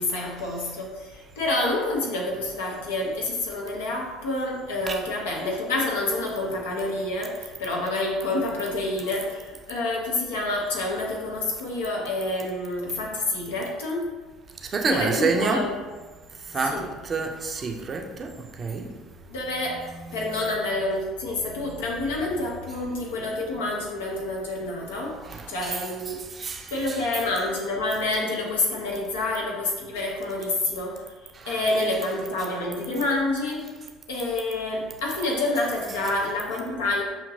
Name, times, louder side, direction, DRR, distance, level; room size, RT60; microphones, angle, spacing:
voice 1, 0.0-14.1 14.8-15.7 16.6-16.9 19.3-25.2 25.5-26.2 26.7-33.7 34.1-37.0, left 2 dB, 70° left, -1 dB, 0.8 m, -28 dB
voice 2, 14.7-15.7 16.5-18.3 18.6-18.9 25.2-25.7 26.4-26.7 31.5-31.6, right 4 dB, 30° right, 2 dB, 0.6 m, -27 dB
6.2 x 2.8 x 2.6 m, 1.3 s
figure-of-eight pair, 60°, 0 cm